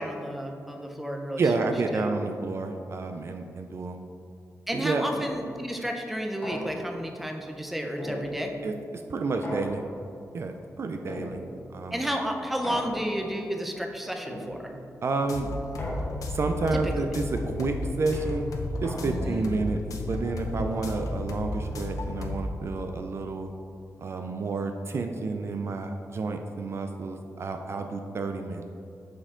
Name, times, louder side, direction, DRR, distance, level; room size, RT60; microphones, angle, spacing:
voice 1, 0.0-1.4 1.9-2.1 4.7-8.5 11.9-14.7 16.7-16.9 19.0-19.5, equal, 5° right, 2 dB, 0.6 m, -32 dB
voice 2, 1.4-4.0 4.7-5.1 8.6-9.8 10.3-11.4 11.7-12.0 15.0-15.5 16.3-18.5 18.8-19.8 20.1-23.5 24.0-28.6, right 3 dB, 50° right, 5 dB, 0.4 m, -30 dB
sound 1, 5.1-5.6 6.4-7.1 8.0-8.7 9.4-10.2 11.1-11.8 12.6-13.4 14.3-14.9 15.8-16.5 17.4-19.4, left 1 dB, 40° left, 1.1 m, -39 dB
sound 2, 15.2-22.4, left 2 dB, 80° left, 0.6 m, -33 dB
7.3 x 4.3 x 3.7 m, 2.5 s
wide cardioid pair, 135°, 6 cm